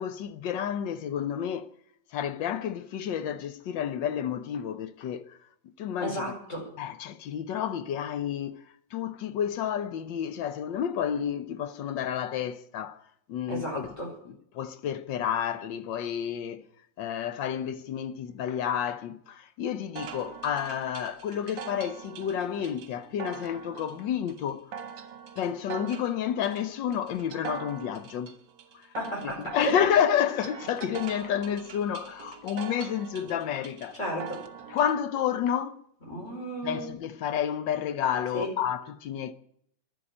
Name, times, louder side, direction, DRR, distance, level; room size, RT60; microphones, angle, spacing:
voice 1, 0.0-1.7 2.1-5.4 5.8-6.2 6.8-8.6 8.9-13.0 13.3-13.9 14.5-16.6 17.0-24.7 25.4-28.3 28.7-28.9 29.2-34.0 34.7-35.8 36.6-39.3, left 9 dB, 80° left, 1.5 m, -30 dB
voice 2, 6.0-6.7 13.5-14.1 28.9-29.8 33.9-34.4 36.1-36.9 38.3-38.5, equal, 40° left, 4.9 m, -33 dB
sound 1, 20.0-35.0, right 7 dB, 80° right, 1.8 m, -43 dB
11.5 x 9.4 x 9.8 m
omnidirectional pair, 2.0 m